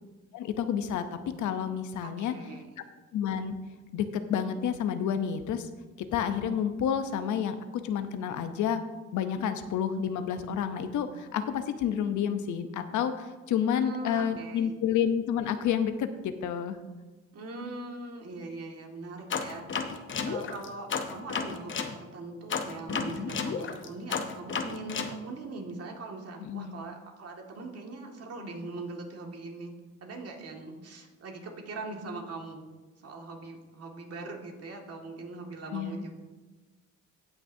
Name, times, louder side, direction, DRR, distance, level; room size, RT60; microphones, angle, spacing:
voice 1, 0.3-2.3 3.1-3.6 3.9-5.7 6.1-8.8 9.1-16.8 26.4-26.8 35.7-36.1, left 8 dB, 75° left, 9 dB, 0.7 m, -30 dB
voice 2, 2.0-2.7 13.7-14.8 17.3-29.7 30.0-32.6 33.0-36.2, right 3 dB, 55° right, 1 dB, 1.9 m, -41 dB
sound 1, 19.3-21.9 22.5-25.1, left 5 dB, 40° left, 0.9 m, -32 dB
17.5 x 6.0 x 2.7 m, 1.2 s
cardioid pair, 90°, 30 cm